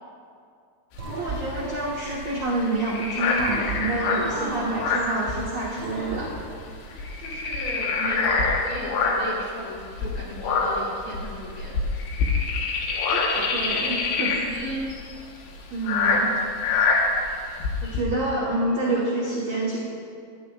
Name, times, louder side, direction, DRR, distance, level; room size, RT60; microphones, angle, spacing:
sound 1, 1.0-5.9 6.2-6.4 6.7-9.4 9.9-18.0, left 4 dB, 80° left, 3.4 m, -25 dB
sound 2, 1.0-2.9 3.4-5.3 5.8-7.5, right 2 dB, 40° right, 1.9 m, -37 dB
voice 1, 1.1-6.3 13.1-14.4 15.7-16.3 17.8-19.8, right 2 dB, 80° right, -5 dB, 1.5 m, -28 dB
voice 2, 4.3-4.7 7.2-11.7 14.4-14.8, equal, 50° left, -5 dB, 2.1 m, -35 dB
17.5 x 12.5 x 2.4 m, 2.3 s
omnidirectional pair, 5.2 m